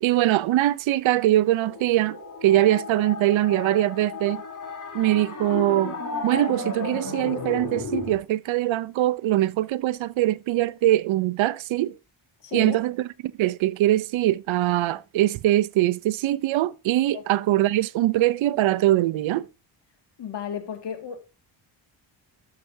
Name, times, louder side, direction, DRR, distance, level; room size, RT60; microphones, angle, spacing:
voice 1, 0.0-4.4 4.9-5.9 6.2-12.0 12.5-13.0 13.4-19.5, right 15 dB, 80° right, 0.7 m, -22 dB
sound 1, 1.6-8.2, left 4 dB, 40° left, 3.4 m, -33 dB
voice 2, 12.4-12.8 17.1-17.2 20.2-21.2, left 7 dB, 60° left, 2.2 m, -33 dB
12.5 x 6.8 x 2.7 m
cardioid pair, 105°, 46 cm